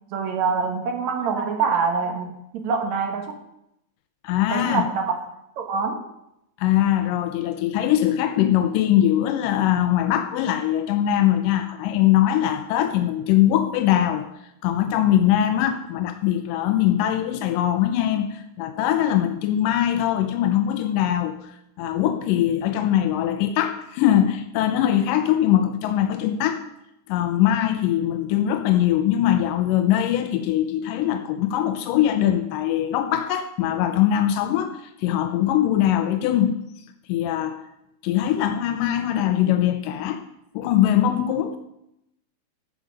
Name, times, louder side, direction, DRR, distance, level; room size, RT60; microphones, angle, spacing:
voice 1, 0.1-3.3 4.5-5.1 5.6-6.0, right 5 dB, 65° right, 4 dB, 2.4 m, -25 dB
voice 2, 4.2-4.9 6.6-14.2 14.6-26.6 27.1-36.6 37.1-37.6 38.0-40.2 40.5-41.6, left 11 dB, 90° left, 7 dB, 2.4 m, -21 dB
13.0 x 7.5 x 5.1 m, 0.83 s
omnidirectional pair, 3.7 m